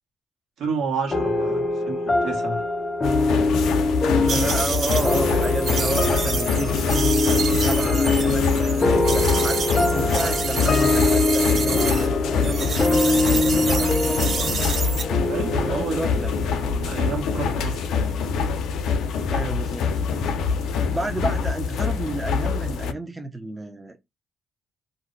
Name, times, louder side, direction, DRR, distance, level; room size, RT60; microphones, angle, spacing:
voice 1, 0.6-1.6 1.9-2.6 15.3-16.1 16.5-17.9 21.2-21.3, right 5 dB, 75° right, 1.2 m, -30 dB
sound 1, 1.1-17.9, left 2 dB, 30° left, 0.6 m, -24 dB
voice 2, 1.4-1.8 4.2-6.7 7.2-14.7 15.7-16.3 19.2-19.9 20.9-24.0, right 2 dB, 15° right, 0.5 m, -31 dB
sound 2, 3.0-22.9, left 5 dB, 80° left, 0.5 m, -25 dB
sound 3, 4.3-12.1 12.4-15.0, right 5 dB, 55° right, 0.8 m, -29 dB
2.5 x 2.1 x 3.8 m
cardioid pair, 90°, 0 cm